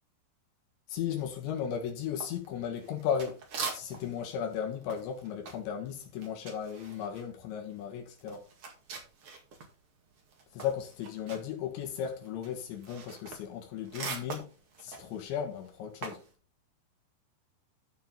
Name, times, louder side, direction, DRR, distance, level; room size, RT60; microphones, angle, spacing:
voice 1, 0.9-3.4 3.7-8.4 10.5-14.5 14.8-16.2, left 8 dB, 85° left, 4.0 m, -35 dB
sound 1, 2.2-4.2 4.5-9.7 10.1-16.3, right 4 dB, 45° right, 2.2 m, -43 dB
13.5 x 4.9 x 3.9 m
omnidirectional pair, 5.1 m